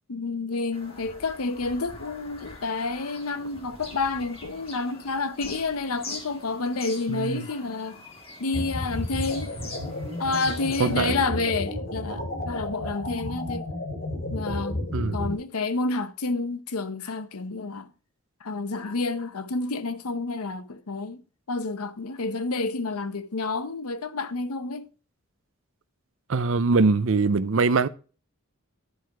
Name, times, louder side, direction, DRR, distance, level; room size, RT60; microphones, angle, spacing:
voice 1, 0.1-8.0 8.4-9.6 10.2-13.6 14.3-14.8 15.1-17.9 18.4-21.2 21.5-24.9, left 3 dB, 85° left, 0.8 m, -29 dB
Bird vocalization bird call bird song, 0.7-11.2, left 2 dB, 25° left, 1.6 m, -44 dB
voice 2, 7.1-7.4 10.8-11.2 14.9-15.2 26.3-27.9, right 4 dB, 60° right, 0.5 m, -22 dB
sound 1, 8.5-15.3, left 1 dB, 60° left, 2.8 m, -32 dB
11.0 x 4.7 x 4.6 m
head